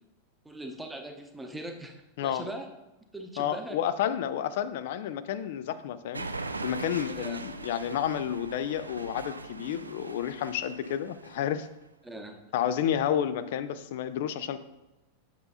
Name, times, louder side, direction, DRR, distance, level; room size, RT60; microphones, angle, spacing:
voice 1, 0.4-2.7 3.1-3.8 7.1-7.4 12.0-12.4, right 1 dB, 5° right, 3 dB, 0.8 m, -41 dB
voice 2, 3.4-6.3 6.6-11.7 12.5-14.6, left 10 dB, 55° left, 12 dB, 0.4 m, -30 dB
sound 1, 6.1-11.7, right 3 dB, 80° right, 0.3 m, -40 dB
7.9 x 6.5 x 2.7 m, 0.98 s
figure-of-eight pair, 90°, 0 cm